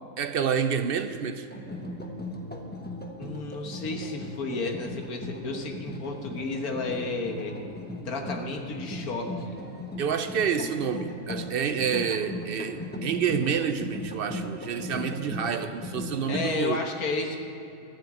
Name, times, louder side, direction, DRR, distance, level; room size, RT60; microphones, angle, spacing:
voice 1, 0.2-1.5 10.0-16.8, right 7 dB, 60° right, 9 dB, 0.6 m, -28 dB
sound 1, 1.5-16.4, left 1 dB, 10° left, 0.7 m, -38 dB
voice 2, 3.2-7.6 8.1-9.6 16.3-17.4, left 3 dB, 90° left, 3 dB, 1.7 m, -32 dB
12.5 x 7.5 x 8.6 m, 2.8 s
omnidirectional pair, 1.5 m